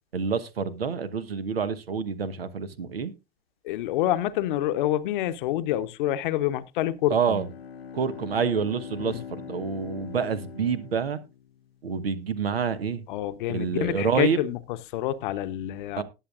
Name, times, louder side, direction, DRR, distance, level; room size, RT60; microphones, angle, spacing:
voice 1, 0.1-3.1 7.1-7.5 7.9-11.2 11.8-13.0 13.5-14.4 16.0-16.1, right 6 dB, 75° right, 1.1 m, -27 dB
voice 2, 3.6-7.4 9.0-9.2 13.1-16.0, left 13 dB, 55° left, 0.9 m, -27 dB
Bowed string instrument, 7.2-11.8, left 7 dB, 80° left, 0.7 m, -42 dB
19.0 x 7.3 x 2.5 m
figure-of-eight pair, 90°, 30 cm